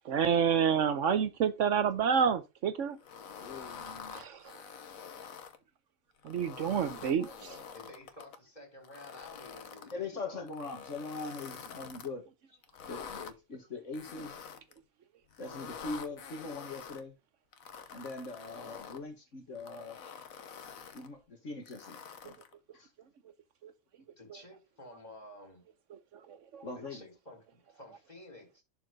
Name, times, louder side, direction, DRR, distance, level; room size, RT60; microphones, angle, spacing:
voice 1, 0.1-3.0 4.1-4.4 6.2-7.3 26.5-26.6, right 7 dB, 70° right, 1.1 m, -28 dB
sound 1, 3.0-5.6 6.2-8.4 8.8-9.9 10.5-12.1 12.6-13.3 13.9-14.8 15.3-17.0 17.5-19.0 19.5-21.1 21.7-22.5, left 6 dB, 90° left, 1.4 m, -47 dB
voice 2, 3.4-4.2 9.9-12.2 12.9-14.4 15.4-17.1 17.9-20.0 20.9-22.4 22.7-22.9 26.6-27.0, left 3 dB, 65° left, 2.0 m, -42 dB
voice 3, 7.7-10.4 11.7-11.9 24.2-25.6 26.8-27.4 27.7-28.6, left 1 dB, 30° left, 4.8 m, -52 dB
11.0 x 4.6 x 3.9 m
omnidirectional pair, 1.4 m